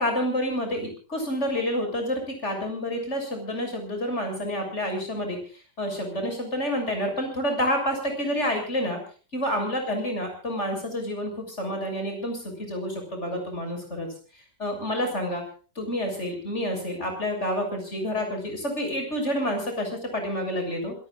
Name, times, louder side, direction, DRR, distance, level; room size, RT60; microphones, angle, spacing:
voice 1, 0.0-5.4 5.8-9.0 9.3-14.1 14.6-15.4 15.8-20.9, equal, 40° left, 4 dB, 7.1 m, -28 dB
27.0 x 18.0 x 2.5 m, 0.38 s
omnidirectional pair, 1.8 m